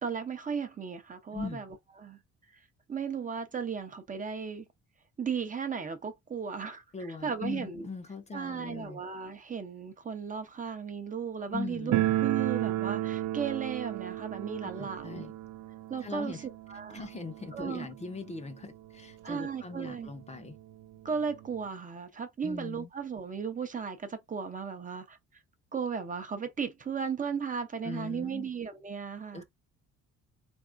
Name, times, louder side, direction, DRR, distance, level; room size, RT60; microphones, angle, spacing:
voice 1, 0.0-2.2 2.9-4.6 5.2-7.8 8.3-15.2 15.9-16.4 16.7-17.0 17.5-17.9 19.2-20.1 21.0-25.2 25.7-29.4, right 6 dB, 30° right, 0.7 m, -36 dB
voice 2, 1.3-1.6 6.9-9.0 11.5-12.0 14.6-15.3 16.0-16.5 16.9-20.6 22.4-22.9 27.8-28.5 29.3-29.4, left 4 dB, 25° left, 0.7 m, -40 dB
sound 1, 11.9-18.6 18.9-19.0 19.2-19.3 20.1-20.2 20.5-21.7, right 14 dB, 90° right, 0.6 m, -33 dB
4.0 x 3.5 x 2.5 m
cardioid pair, 135°, 29 cm